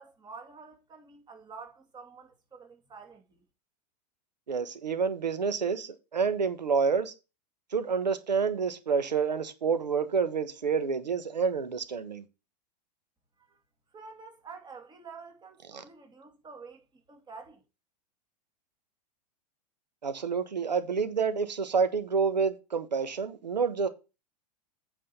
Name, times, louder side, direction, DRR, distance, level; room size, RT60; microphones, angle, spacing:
voice 1, 0.0-3.4 13.5-13.6 13.9-17.6, right 5 dB, 20° right, 2.8 m, -48 dB
voice 2, 4.5-7.1 7.7-12.2 15.7-15.8 20.0-23.9, right 5 dB, 85° right, 1.4 m, -28 dB
8.7 x 5.0 x 5.5 m
hypercardioid pair, 100°, 21 cm